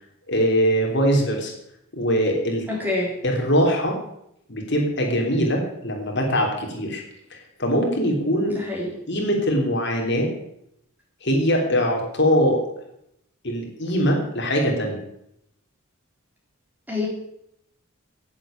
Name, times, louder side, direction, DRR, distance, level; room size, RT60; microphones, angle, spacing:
voice 1, 0.3-1.5 1.9-2.6 3.2-4.0 4.5-7.0 7.3-8.6 9.1-10.3 11.2-12.6 13.4-15.0, equal, 50° left, 1 dB, 3.2 m, -22 dB
voice 2, 2.7-3.2 8.4-9.0 16.9-17.1, left 2 dB, 10° right, -2 dB, 3.9 m, -26 dB
11.0 x 9.5 x 8.9 m, 0.76 s
head